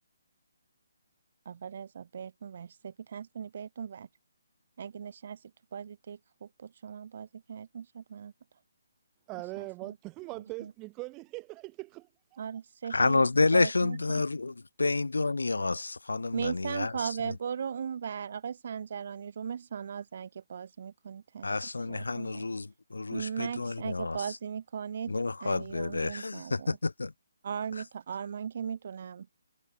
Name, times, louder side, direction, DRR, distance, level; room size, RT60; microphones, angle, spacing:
voice 1, 1.5-4.1 4.8-8.3 9.6-10.0 10.3-10.7 12.4-14.2 16.3-21.6 21.9-22.5 23.1-25.1 25.4-26.8 27.4-29.3, right 7 dB, 50° right, 1.7 m, -38 dB
voice 2, 9.3-12.4, right 24 dB, 20° right, 0.4 m, -41 dB
voice 3, 12.9-16.9 21.4-24.2 25.1-27.1, left 3 dB, 90° left, 0.4 m, -29 dB
hypercardioid pair, 155°, 0 cm